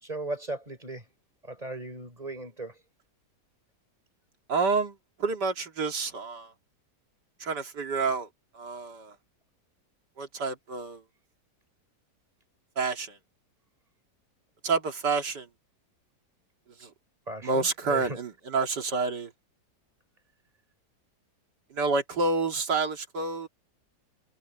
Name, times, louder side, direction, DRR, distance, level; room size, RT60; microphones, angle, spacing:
voice 1, 0.0-1.0 1.4-2.8 17.3-18.2, right 2 dB, 20° right, 4.0 m, -37 dB
voice 2, 4.5-6.5 7.4-8.3 8.5-9.1 10.2-11.0 12.8-13.2 14.6-15.5 16.8-16.9 17.4-19.3 21.7-23.5, right 4 dB, 80° right, 2.9 m, -29 dB
omnidirectional pair, 1.8 m